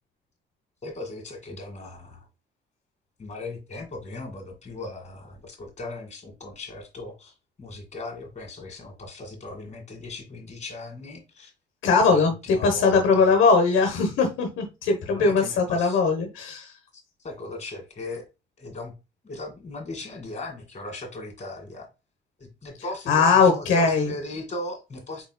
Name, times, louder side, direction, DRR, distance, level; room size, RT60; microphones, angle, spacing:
voice 1, 0.8-2.3 3.2-11.5 12.1-13.3 15.0-16.0 16.9-18.3 18.6-18.9 19.2-21.9 22.4-25.3, left 2 dB, 35° left, 2.0 m, -38 dB
voice 2, 11.8-16.7 23.1-24.1, left 4 dB, 80° left, 1.0 m, -20 dB
4.5 x 4.1 x 2.2 m
cardioid pair, 90°, 20 cm